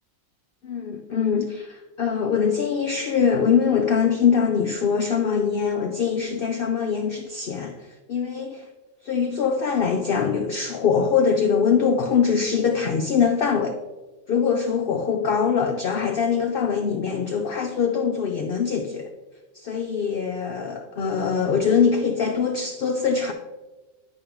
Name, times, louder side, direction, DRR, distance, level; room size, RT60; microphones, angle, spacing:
voice 1, 0.6-8.7 9.0-13.8 14.3-19.1 19.5-23.3, left 6 dB, 65° left, 0.6 m, -23 dB
9.7 x 5.0 x 3.0 m
omnidirectional pair, 1.4 m